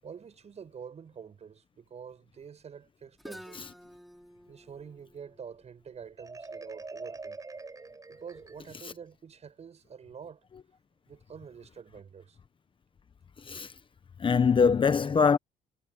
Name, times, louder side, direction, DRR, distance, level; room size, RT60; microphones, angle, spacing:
voice 1, 0.0-3.7 4.5-7.4 8.1-10.4 11.1-12.4, right 7 dB, 40° right, 7.9 m, -47 dB
Guitar, 3.2-7.0, equal, ahead, 3.8 m, -51 dB
Marimba xylophone, 6.2-8.9, right 3 dB, 20° right, 7.9 m, -44 dB
voice 2, 13.4-13.7 14.2-15.4, left 5 dB, 30° left, 1.1 m, -23 dB
cardioid pair, 110°, 17 cm